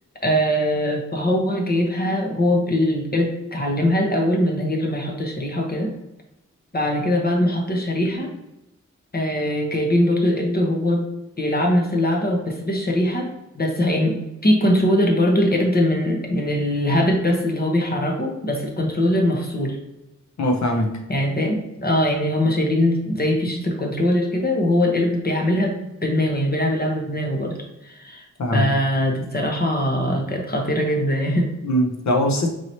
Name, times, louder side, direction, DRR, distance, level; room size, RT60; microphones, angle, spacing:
voice 1, 0.2-5.9 6.7-8.4 9.1-11.0 11.4-13.3 13.5-19.8 21.1-28.2 28.5-31.5, left 1 dB, 30° left, 1 dB, 1.1 m, -21 dB
voice 2, 20.4-21.0 28.4-28.7 31.6-32.5, left 1 dB, 70° left, 2 dB, 0.9 m, -21 dB
4.6 x 3.0 x 2.8 m, 0.92 s
wide cardioid pair, 70°, 29 cm